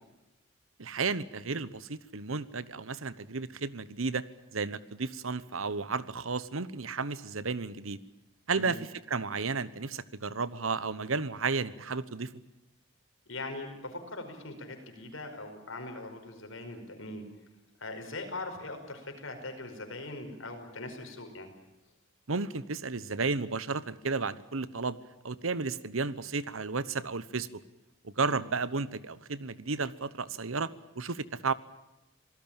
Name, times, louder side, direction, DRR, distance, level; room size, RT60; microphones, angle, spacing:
voice 1, 0.8-4.2 4.5-8.0 8.5-12.3 22.3-25.0 25.2-27.6 28.0-30.7 31.0-31.5, right 4 dB, 85° right, 16 dB, 1.1 m, -33 dB
voice 2, 13.3-17.2 17.8-21.5 28.2-28.4, left 2 dB, 75° left, 5 dB, 5.2 m, -41 dB
26.0 x 18.5 x 9.0 m, 0.98 s
head